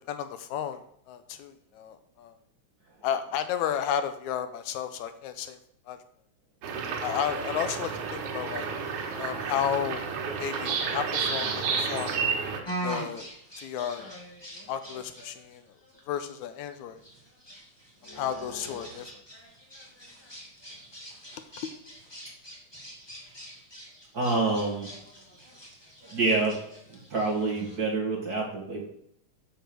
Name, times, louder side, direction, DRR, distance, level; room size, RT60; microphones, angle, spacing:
voice 1, 0.1-0.8 1.1-2.3 3.0-5.6 5.9-6.0 7.0-8.7 9.2-10.0 10.4-12.2 12.8-13.3 13.6-14.1 14.7-15.6 16.1-17.0 18.1-19.1, left 9 dB, 80° left, 10 dB, 2.0 m, -32 dB
sound 1, 6.6-12.6, right 5 dB, 80° right, 2.8 m, -31 dB
sound 2, 12.6-27.8, right 1 dB, 10° left, 1.5 m, -43 dB
voice 2, 24.1-24.9 26.1-26.6 27.1-28.8, right 3 dB, 40° right, -2 dB, 1.7 m, -27 dB
6.9 x 6.8 x 6.0 m, 0.70 s
omnidirectional pair, 3.5 m